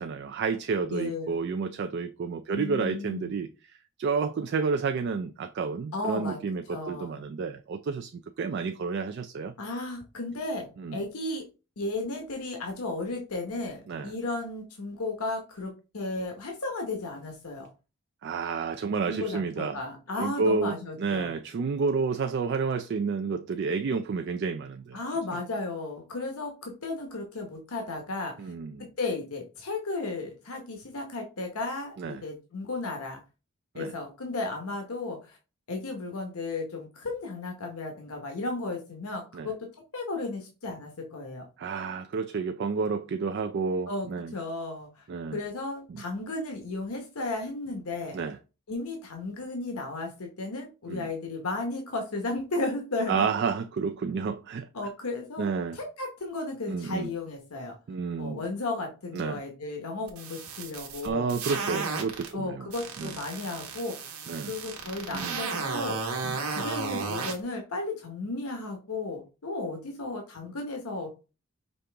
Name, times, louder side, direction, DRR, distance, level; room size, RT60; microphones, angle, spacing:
voice 1, 0.0-3.5 4.0-8.1 8.4-9.5 10.8-11.0 13.9-14.1 18.2-19.8 20.2-25.0 28.4-28.8 32.0-32.2 33.8-33.9 39.3-39.5 41.6-44.3 45.1-45.4 45.9-46.0 48.1-48.4 50.9-51.1 53.1-54.7 55.4-55.8 56.7-57.1 57.9-58.4 59.1-59.4 61.0-62.7 63.0-63.1 64.3-64.5 65.1-65.4 66.2-66.4, right 5 dB, 50° right, 0.3 m, -30 dB
voice 2, 0.8-1.4 2.5-3.4 5.9-6.4 6.7-7.2 9.6-11.4 11.8-17.7 19.1-21.4 24.9-28.3 29.0-33.2 33.7-35.4 35.7-39.5 39.9-41.5 43.9-45.0 45.3-48.2 48.7-53.4 54.7-57.7 58.2-61.3 62.3-64.2 64.5-66.0 66.5-71.1, left 2 dB, 80° left, 0.9 m, -34 dB
sound 1, 60.1-62.3 62.7-67.4, right 4 dB, 85° right, 1.2 m, -33 dB
5.2 x 2.9 x 3.3 m
head